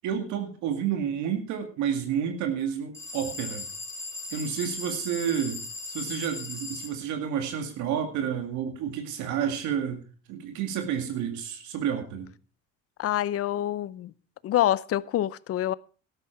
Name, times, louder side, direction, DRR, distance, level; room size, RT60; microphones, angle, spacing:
voice 1, 0.0-3.7 4.3-5.6 5.9-10.0 10.3-12.3, right 8 dB, 80° right, 2.1 m, -30 dB
sound 1, 2.9-6.9, left 3 dB, 10° left, 3.1 m, -38 dB
voice 2, 13.0-14.1 14.4-15.7, left 13 dB, 50° left, 0.7 m, -26 dB
12.5 x 12.0 x 4.5 m
cardioid pair, 95°, 29 cm